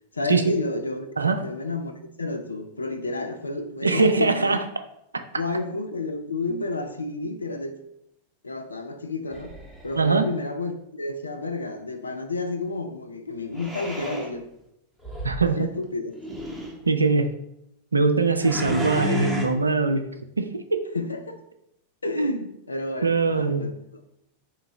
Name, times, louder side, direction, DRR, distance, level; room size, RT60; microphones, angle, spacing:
voice 1, 0.1-1.1 1.4-4.6 5.3-7.8 8.4-9.5 9.8-14.5 15.6-16.1 20.9-21.4 22.0-22.4 22.7-24.0, left 3 dB, 80° left, 7 dB, 0.4 m, -31 dB
voice 2, 3.8-4.7 6.5-6.6 10.0-10.3 15.2-15.7 16.9-17.3 17.9-20.0 20.4-20.8 22.2-22.4 23.0-23.7, right 4 dB, 80° right, 8 dB, 0.3 m, -22 dB
sound 1, 9.3-10.2 13.5-14.3 15.0-15.5 16.1-16.8 18.4-19.5, left 1 dB, 5° right, 0.8 m, -32 dB
3.8 x 2.8 x 3.6 m, 0.79 s
figure-of-eight pair, 90°, 0 cm